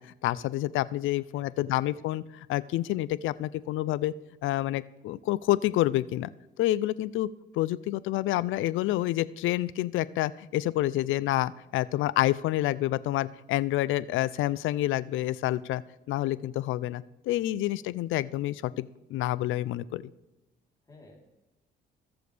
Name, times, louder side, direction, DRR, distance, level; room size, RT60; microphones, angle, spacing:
voice 1, 0.0-2.2 2.5-4.1 4.4-6.3 6.6-7.3 7.5-15.8 16.1-20.0, left 15 dB, 80° left, 19 dB, 0.4 m, -28 dB
voice 2, 1.3-1.9 20.8-21.2, left 2 dB, 20° left, -2 dB, 3.5 m, -52 dB
18.0 x 6.8 x 3.4 m, 1.0 s
cardioid pair, 90°, 20 cm